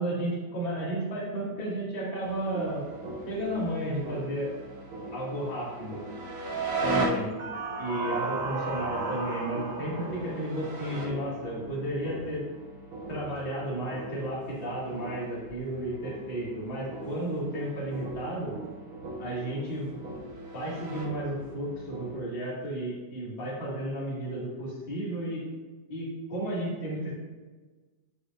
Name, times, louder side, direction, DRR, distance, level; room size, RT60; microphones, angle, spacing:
voice 1, 0.0-2.8 3.3-4.5 5.1-6.0 6.8-7.3 7.8-12.4 13.1-18.5 19.2-20.1 20.5-25.4 25.9-27.1, right 1 dB, 20° left, -6 dB, 1.5 m, -33 dB
sound 1, 2.2-22.2, right 2 dB, 70° right, 3.4 m, -37 dB
11.0 x 5.0 x 2.6 m, 1.3 s
omnidirectional pair, 4.1 m